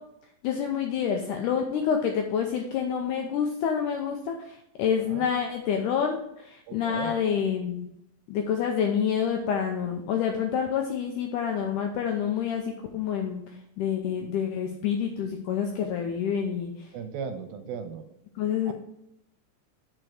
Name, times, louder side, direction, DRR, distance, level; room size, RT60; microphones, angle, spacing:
voice 1, 0.4-7.9 8.3-13.4 13.8-16.9 18.4-18.7, left 7 dB, 80° left, 3 dB, 1.8 m, -28 dB
voice 2, 6.7-7.1 16.9-18.0 18.7-18.8, right 6 dB, 85° right, 8 dB, 2.5 m, -36 dB
7.7 x 4.6 x 4.7 m, 0.81 s
omnidirectional pair, 4.3 m